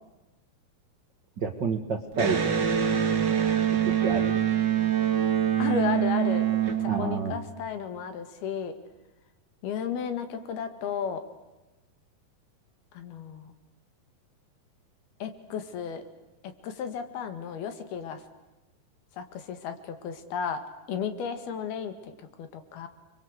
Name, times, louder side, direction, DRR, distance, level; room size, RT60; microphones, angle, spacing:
voice 1, 1.4-2.5 3.8-4.4 6.9-7.3, right 5 dB, 55° right, 6 dB, 1.2 m, -29 dB
Electric guitar, 2.1-7.6, right 9 dB, 35° right, 2.0 m, -25 dB
voice 2, 5.6-6.5 6.8-8.7 9.6-11.2 12.9-13.5 15.2-16.0 16.4-18.2 19.1-20.6 20.9-22.9, left 7 dB, 70° left, 9 dB, 3.8 m, -33 dB
29.5 x 23.0 x 8.1 m, 1.0 s
omnidirectional pair, 4.6 m